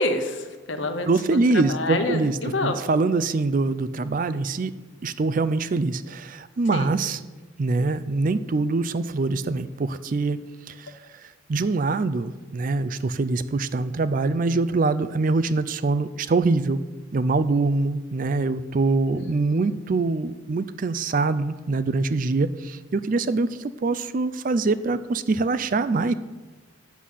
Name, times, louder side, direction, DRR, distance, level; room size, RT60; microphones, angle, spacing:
voice 1, 0.0-1.4 1.7-2.8 6.7-6.9 19.1-19.2 19.5-19.7, left 2 dB, 65° left, 7 dB, 1.0 m, -27 dB
voice 2, 1.1-4.7 5.0-7.2 7.6-10.4 10.7-10.9 11.5-16.8 17.1-26.1, right 3 dB, 40° right, 13 dB, 0.4 m, -24 dB
8.3 x 5.7 x 7.6 m, 1.3 s
head